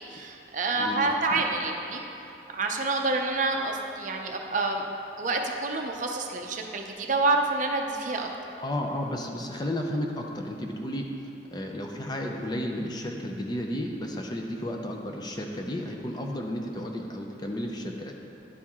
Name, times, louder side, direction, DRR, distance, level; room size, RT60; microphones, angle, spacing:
voice 1, 0.1-2.0 2.5-4.9 5.2-8.3, right 3 dB, 45° right, 2 dB, 0.5 m, -28 dB
voice 2, 0.7-1.4 8.6-11.1 11.5-18.1, left 1 dB, 20° left, 1 dB, 0.5 m, -33 dB
11.0 x 4.6 x 3.6 m, 2.8 s
head